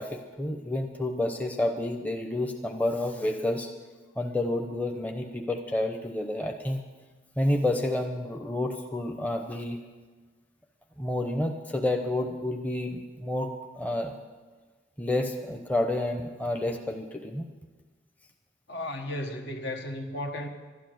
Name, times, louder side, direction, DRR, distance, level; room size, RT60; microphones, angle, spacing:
voice 1, 0.0-3.7 4.2-6.8 7.4-9.8 11.0-14.1 15.0-17.5, left 1 dB, 10° left, 4 dB, 0.8 m, -29 dB
voice 2, 18.7-20.5, left 1 dB, 65° left, 4 dB, 1.5 m, -34 dB
12.5 x 11.0 x 7.9 m, 1.3 s
head